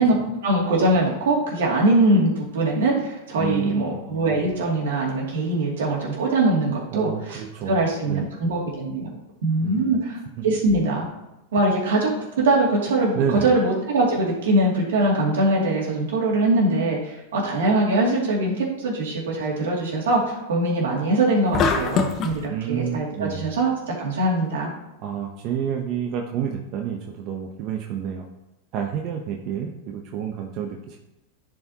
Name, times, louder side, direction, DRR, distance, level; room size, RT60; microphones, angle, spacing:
voice 1, 0.4-7.4 7.7-9.1 9.4-10.2 10.4-11.1 11.5-12.1 12.4-24.7, right 2 dB, 80° right, -3 dB, 2.4 m, -22 dB
voice 2, 3.4-3.9 6.9-7.8 8.1-8.3 9.6-10.0 13.1-13.5 22.5-23.5 25.0-28.3 28.7-31.0, right 8 dB, 45° right, 2 dB, 0.8 m, -29 dB
sound 1, 21.5-22.4, left 5 dB, 35° left, 0.9 m, -22 dB
10.5 x 4.7 x 2.9 m, 0.98 s
hypercardioid pair, 115°, 0 cm